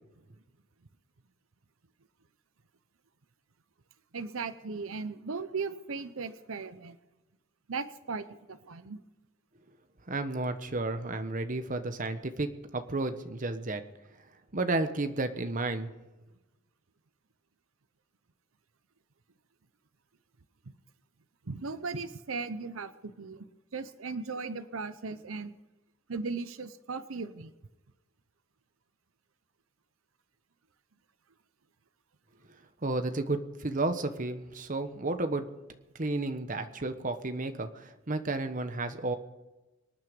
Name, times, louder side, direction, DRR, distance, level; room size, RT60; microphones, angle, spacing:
voice 1, 4.1-7.0 7.7-9.0 21.5-23.4 23.7-25.6 26.1-27.5, right 4 dB, 85° right, 12 dB, 0.8 m, -37 dB
voice 2, 10.1-13.8 14.5-15.9 32.5-35.5 35.9-39.2, right 2 dB, 40° right, 8 dB, 1.1 m, -32 dB
25.5 x 9.6 x 5.2 m, 1.1 s
head